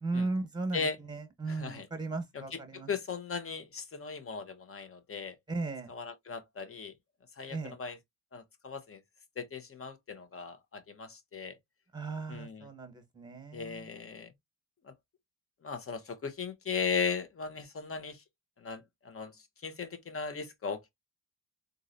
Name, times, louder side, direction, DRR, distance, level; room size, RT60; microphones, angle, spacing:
voice 1, 0.0-2.9 5.5-5.9 7.5-7.8 11.9-13.9, right 3 dB, 10° right, 1.3 m, -36 dB
voice 2, 1.5-1.9 2.3-5.4 5.9-6.9 7.4-8.0 8.3-9.0 9.4-11.6 12.3-12.7 13.5-14.3 14.8-14.9 15.6-18.2 18.6-20.9, left 5 dB, 40° left, 1.0 m, -37 dB
3.8 x 2.6 x 2.7 m
supercardioid pair, 60°, 35 cm